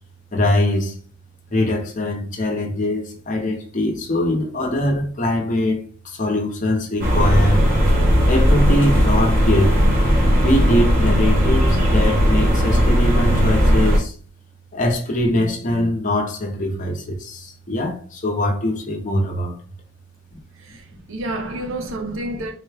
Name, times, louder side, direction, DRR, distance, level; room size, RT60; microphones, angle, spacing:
voice 1, 0.3-1.0 1.5-7.7 8.3-9.8 10.4-14.1 14.7-19.6 22.3-22.4, left 1 dB, 40° left, 0.8 m, -22 dB
sound 1, 7.0-14.0, equal, 50° right, 1.0 m, -16 dB
voice 2, 20.5-22.5, right 1 dB, 90° right, 0.6 m, -29 dB
3.7 x 2.2 x 3.3 m
head